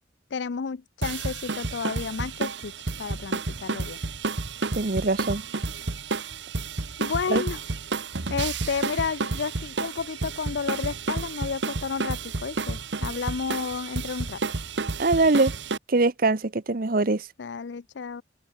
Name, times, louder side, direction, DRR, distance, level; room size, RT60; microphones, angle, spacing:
voice 1, 0.3-2.7 3.0-4.0 7.0-7.6 8.3-14.4 17.4-18.2, left 5 dB, 75° left, 0.5 m, -31 dB
sound 1, 1.0-15.8, right 3 dB, 75° right, 1.2 m, -31 dB
voice 2, 4.7-5.4 7.3-7.4 15.0-15.5 15.9-17.2, right 3 dB, 50° right, 1.0 m, -22 dB
open air
head